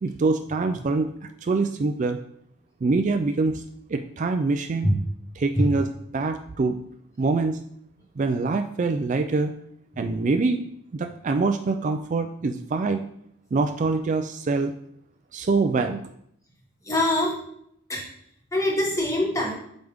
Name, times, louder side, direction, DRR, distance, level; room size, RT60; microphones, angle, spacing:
voice 1, 0.0-1.1 1.4-2.2 2.8-3.6 3.9-4.9 5.4-5.9 6.1-6.8 7.2-7.6 8.2-9.5 10.0-10.6 10.9-13.0 13.5-14.7 15.3-16.1, right 3 dB, 35° right, 6 dB, 0.3 m, -24 dB
voice 2, 16.9-17.4 17.9-18.0 18.5-19.5, left 1 dB, 15° left, -1 dB, 1.2 m, -23 dB
7.8 x 5.1 x 3.5 m, 0.71 s
head